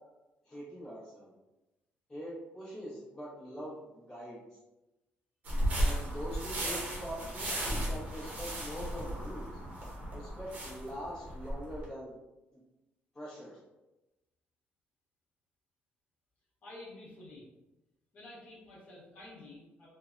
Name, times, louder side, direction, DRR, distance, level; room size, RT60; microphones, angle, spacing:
voice 1, 0.5-1.3 2.1-4.4 5.8-9.5 10.1-12.2 12.5-12.6 13.1-13.6, equal, 15° left, -11 dB, 0.9 m, -43 dB
sound 1, 5.4-11.9, right 1 dB, 40° right, 0.8 m, -35 dB
voice 2, 16.6-17.4 18.1-19.9, left 2 dB, 40° left, -7 dB, 1.1 m, -50 dB
3.3 x 2.1 x 2.5 m, 1.0 s
cardioid pair, 175°, 4 cm